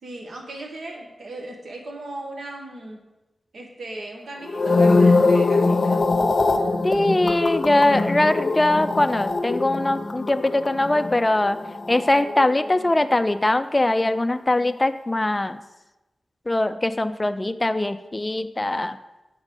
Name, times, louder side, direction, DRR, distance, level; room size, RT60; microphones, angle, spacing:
voice 1, 0.0-3.0 3.5-6.1, right 2 dB, 85° right, 1 dB, 1.2 m, -37 dB
sound 1, 4.4-12.8 13.1-13.5, left 3 dB, 50° left, 0.7 m, -22 dB
voice 2, 6.8-11.6 11.9-15.6 16.5-19.0, left 1 dB, 20° left, 10 dB, 0.3 m, -21 dB
8.3 x 4.1 x 5.3 m, 1.0 s
wide cardioid pair, 125°, 0 cm